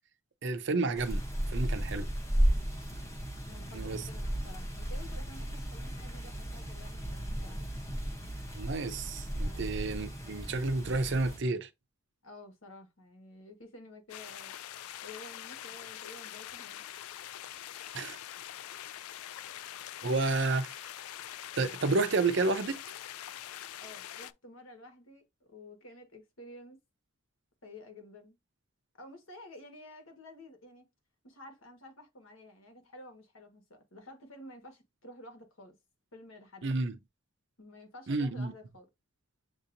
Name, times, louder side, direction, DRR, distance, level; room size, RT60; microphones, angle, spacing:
voice 1, 0.4-1.2 1.5-2.1 3.7-4.0 8.5-11.7 17.9-18.2 20.0-20.9 21.6-22.8 36.6-37.0 38.1-38.5, right 3 dB, 55° right, 0.5 m, -30 dB
sound 1, 1.0-11.4, equal, 15° left, 0.8 m, -34 dB
voice 2, 3.4-7.6 9.4-9.8 12.2-14.6 15.0-16.8 23.8-26.8 27.6-28.4 29.0-30.9 31.2-35.8 36.1-36.7 37.6-38.9, left 1 dB, 70° left, 1.4 m, -51 dB
sound 2, 14.1-24.3, left 12 dB, 85° left, 0.3 m, -44 dB
7.3 x 2.8 x 2.6 m
head